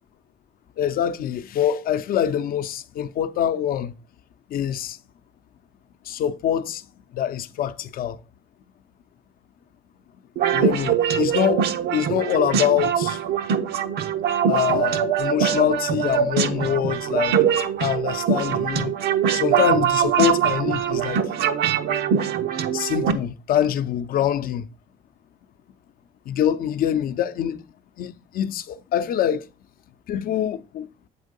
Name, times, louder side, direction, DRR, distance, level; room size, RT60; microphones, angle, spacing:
voice 1, 0.8-3.9 4.5-5.0 6.1-6.8 7.1-8.2 10.5-11.7 11.9-13.2 14.5-17.4 17.8-18.9 19.3-21.2 22.7-24.7 26.3-27.6 28.0-29.5 30.1-30.9, left 9 dB, 60° left, 0.6 m, -24 dB
sound 1, 10.4-23.1, right 8 dB, 75° right, 0.8 m, -23 dB
8.3 x 3.6 x 5.3 m
cardioid pair, 110°, 17 cm